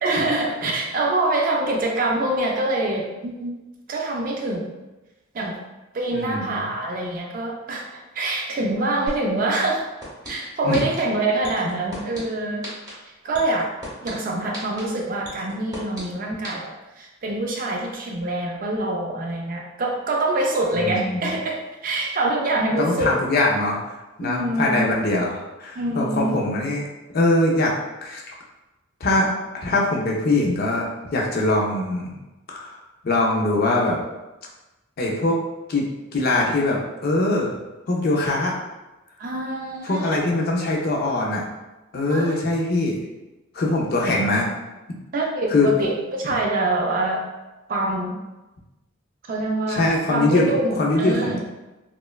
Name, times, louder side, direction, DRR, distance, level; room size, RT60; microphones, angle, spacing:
voice 1, 0.0-3.5 3.9-4.7 5.3-5.6 5.9-9.8 10.2-12.7 13.1-13.7 14.0-23.2 24.2-25.0 25.8-26.4 39.2-40.2 42.1-42.4 44.0-44.2 45.1-47.3 47.7-48.2 49.2-51.4, right 2 dB, 40° right, 0 dB, 0.3 m, -25 dB
voice 2, 6.1-6.6 10.6-10.8 20.7-21.3 22.8-26.8 27.1-27.7 28.0-28.2 29.0-29.3 29.6-30.9 31.1-32.2 32.5-32.8 33.0-34.0 35.0-35.4 35.7-35.8 36.1-37.5 37.9-38.5 39.8-41.4 41.9-43.0 43.5-44.4 45.5-45.7 49.7-51.4, left 2 dB, 45° left, -2 dB, 0.4 m, -22 dB
sound 1, 9.1-9.2 9.5-10.3 10.7-11.0 11.4-12.2 12.6-12.9 13.3-14.1 14.5-14.8 15.2-16.0 16.4-16.5, equal, 15° right, 0.8 m, -35 dB
3.0 x 2.1 x 2.2 m, 1.1 s
head